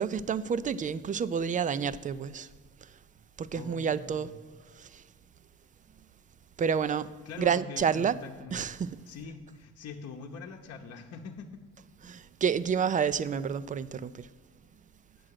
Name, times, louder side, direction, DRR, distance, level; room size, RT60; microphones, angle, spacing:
voice 1, 0.0-2.5 3.4-4.3 4.8-5.0 6.6-7.1 7.4-8.2 8.5-9.0 12.0-14.3, right 7 dB, 25° right, 0.4 m, -29 dB
voice 2, 3.5-4.4 7.2-8.7 9.1-11.6, left 5 dB, 50° left, 0.9 m, -44 dB
8.6 x 6.2 x 6.5 m
supercardioid pair, 70°, 32 cm